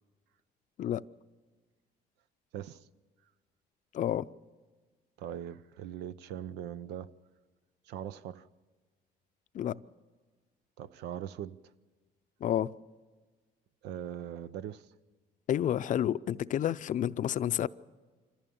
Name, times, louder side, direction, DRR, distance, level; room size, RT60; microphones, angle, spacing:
voice 1, 2.5-2.9 5.2-7.1 7.8-8.5 10.8-11.6 13.8-14.9, right 10 dB, 85° right, 0.7 m, -41 dB
voice 2, 3.9-4.3 9.5-9.8 12.4-12.7 15.5-17.7, left 10 dB, 50° left, 0.5 m, -30 dB
25.5 x 15.0 x 7.0 m
cardioid pair, 110°, 17 cm